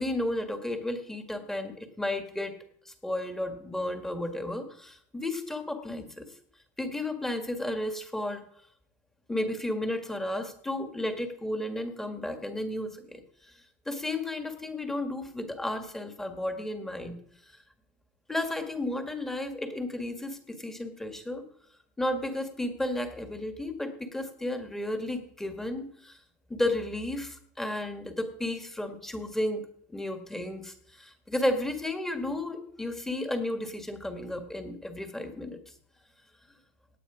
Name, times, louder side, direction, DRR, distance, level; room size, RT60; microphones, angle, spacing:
voice 1, 0.0-2.6 2.9-6.3 6.8-8.5 9.3-13.5 13.9-17.2 17.5-17.6 18.3-21.4 22.0-26.2 26.5-29.6 29.9-35.7, left 1 dB, 5° left, 6 dB, 1.8 m, -33 dB
18.0 x 8.4 x 5.0 m, 0.66 s
supercardioid pair, 140°, 7 cm